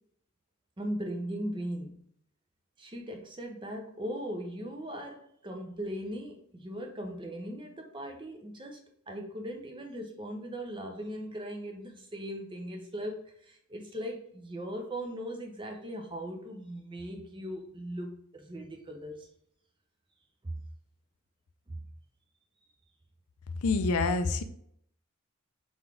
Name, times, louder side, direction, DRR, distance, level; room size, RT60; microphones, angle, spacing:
voice 1, 0.8-2.0 2.8-8.8 9.1-19.3 20.4-20.6 21.7-21.8, equal, 20° right, 3 dB, 0.6 m, -39 dB
voice 2, 23.6-24.4, left 3 dB, 80° left, 9 dB, 0.5 m, -26 dB
3.9 x 3.6 x 3.3 m, 0.67 s
head